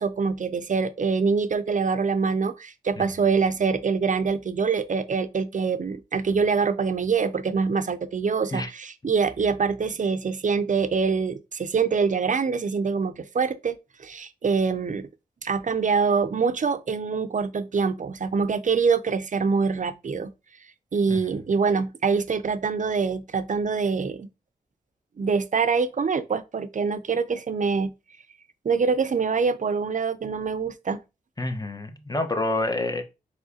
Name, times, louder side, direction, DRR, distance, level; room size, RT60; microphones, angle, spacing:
voice 1, 0.0-15.1 15.4-20.3 20.9-24.3 25.2-27.9 28.6-31.0, right 5 dB, 50° right, 0.6 m, -25 dB
voice 2, 31.4-33.0, left 2 dB, 25° left, 1.1 m, -28 dB
4.6 x 3.5 x 2.9 m
cardioid pair, 50°, 16 cm